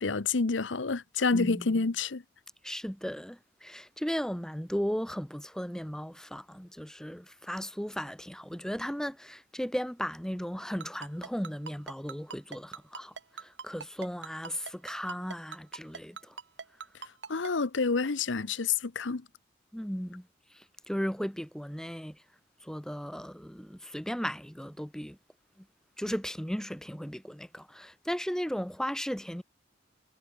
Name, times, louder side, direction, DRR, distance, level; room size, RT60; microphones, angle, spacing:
voice 1, 0.0-2.2 17.3-19.2, left 4 dB, 85° left, 0.9 m, -28 dB
voice 2, 1.3-1.8 2.6-16.4 19.7-22.2 22.6-25.2 25.6-25.7 26.0-29.4, equal, 5° left, 2.0 m, -36 dB
Ringtone, 10.8-17.5, right 5 dB, 70° right, 1.6 m, -41 dB
head